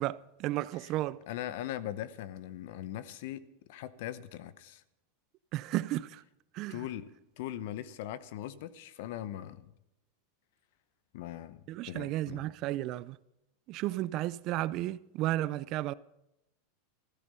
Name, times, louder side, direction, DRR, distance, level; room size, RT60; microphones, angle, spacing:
voice 1, 0.0-1.2 5.5-6.2 6.5-6.8 11.7-13.2 13.7-15.9, right 15 dB, 45° right, 0.4 m, -33 dB
voice 2, 1.3-3.4 3.7-4.8 6.7-7.1 7.4-9.7 11.1-12.5, left 12 dB, 65° left, 0.8 m, -40 dB
13.5 x 12.0 x 5.5 m
supercardioid pair, 135°, 0 cm